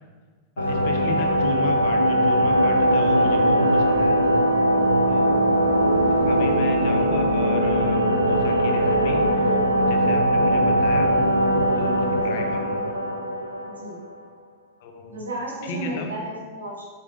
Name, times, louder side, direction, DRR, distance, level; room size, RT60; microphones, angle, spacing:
sound 1, 0.6-14.1, equal, 90° left, 0.6 m, -20 dB
voice 1, 0.6-4.2 5.1-5.3 6.1-11.1 11.8-12.9 14.8-15.2 15.6-16.1, left 3 dB, 50° left, 4 dB, 0.9 m, -34 dB
voice 2, 3.2-4.4 5.3-5.4 12.3-12.4 13.7-14.0 15.1-16.9, right 1 dB, 70° right, -4 dB, 1.8 m, -35 dB
8.2 x 5.4 x 2.6 m, 1.5 s
figure-of-eight pair, 90°, 0 cm